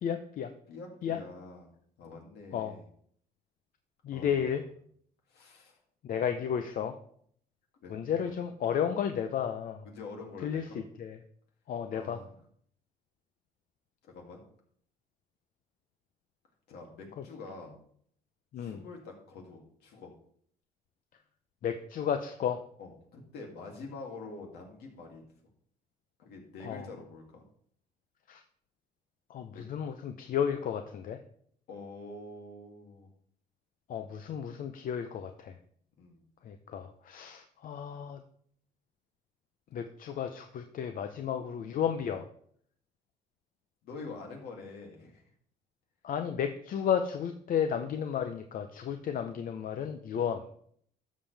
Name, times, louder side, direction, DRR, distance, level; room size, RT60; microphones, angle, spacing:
voice 1, 0.0-0.5 1.0-1.2 2.5-2.7 4.0-4.6 6.0-6.9 7.9-9.8 10.4-10.6 11.0-11.2 11.7-12.2 18.5-18.8 21.6-22.6 26.6-26.8 28.3-28.4 29.3-31.2 33.9-35.5 36.4-38.2 39.7-42.3 46.0-50.4, left 8 dB, 55° left, 7 dB, 0.8 m, -33 dB
voice 2, 0.7-1.7 2.0-2.8 4.1-4.6 5.3-5.8 7.8-8.4 9.8-10.8 11.9-12.4 14.1-14.4 16.7-17.8 18.6-20.1 22.8-25.2 26.2-27.4 29.5-29.6 31.7-33.1 36.0-36.2 43.8-45.2, left 3 dB, 70° left, 1 dB, 2.7 m, -46 dB
12.5 x 7.4 x 3.5 m, 0.62 s
cardioid pair, 110°, 17 cm